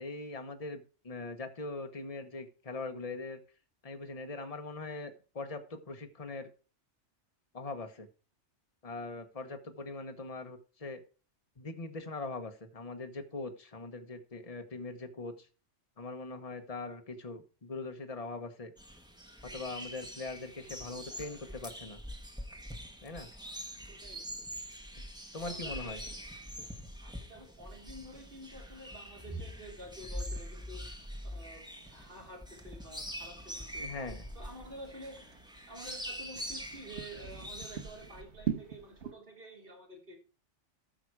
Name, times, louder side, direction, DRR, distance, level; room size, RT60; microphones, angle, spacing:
voice 1, 0.0-3.4 3.8-6.5 7.5-8.1 8.8-11.0 11.6-15.5 16.0-18.7 19.5-22.0 23.0-23.3 25.0-25.1 25.3-26.0 33.8-34.3, left 3 dB, 30° left, 6 dB, 1.3 m, -41 dB
sound 1, 18.8-38.2, equal, 5° right, 1.5 m, -44 dB
voice 2, 23.9-24.4 25.4-26.2 27.0-30.8 31.3-31.6 31.9-33.9 34.3-35.2 35.7-40.2, right 1 dB, 50° right, -1 dB, 3.8 m, -49 dB
sound 2, 27.6-39.1, right 8 dB, 75° right, 1.6 m, -46 dB
14.0 x 6.1 x 4.8 m, 0.35 s
omnidirectional pair, 1.2 m